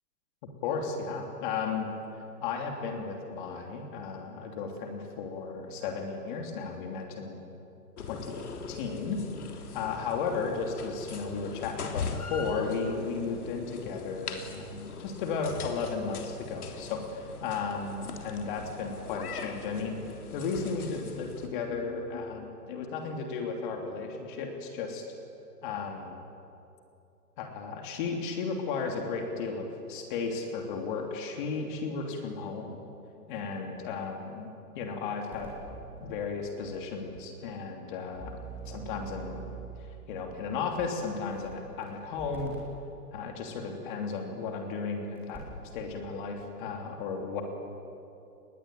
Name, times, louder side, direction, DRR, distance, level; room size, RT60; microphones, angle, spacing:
voice 1, 0.6-1.9 2.4-7.4 8.1-9.2 9.7-25.0 25.6-26.2 27.4-32.8 33.3-35.5 36.0-38.3 38.7-39.4 40.1-42.5 43.1-45.4 45.7-47.4, left 5 dB, 30° left, 2 dB, 3.1 m, -34 dB
sound 1, 8.0-21.5, left 4 dB, 65° left, 3.5 m, -41 dB
sound 2, 35.3-36.0 36.7-36.8 37.1-37.2 38.1-39.8 40.8-40.9 41.3-41.8 42.2-42.6 44.1-44.2 45.2-45.7 46.0-46.1, right 5 dB, 5° right, 5.0 m, -44 dB
29.0 x 20.5 x 9.2 m, 2.7 s
hypercardioid pair, 160°, 47 cm